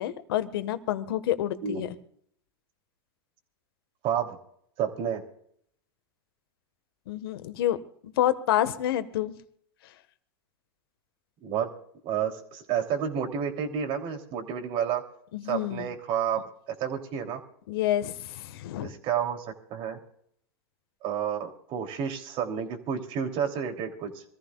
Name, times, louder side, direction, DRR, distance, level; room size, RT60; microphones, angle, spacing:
voice 1, 0.0-1.9 7.1-7.8 8.2-9.3 15.3-15.9 17.7-18.9, left 12 dB, 70° left, 11 dB, 1.6 m, -28 dB
voice 2, 4.0-4.4 4.8-5.2 11.4-11.7 12.0-15.0 15.4-16.4 16.8-17.4 18.8-20.0 21.0-24.2, right 8 dB, 45° right, 4 dB, 3.2 m, -30 dB
26.0 x 14.5 x 2.4 m, 0.67 s
hypercardioid pair, 115°, 13 cm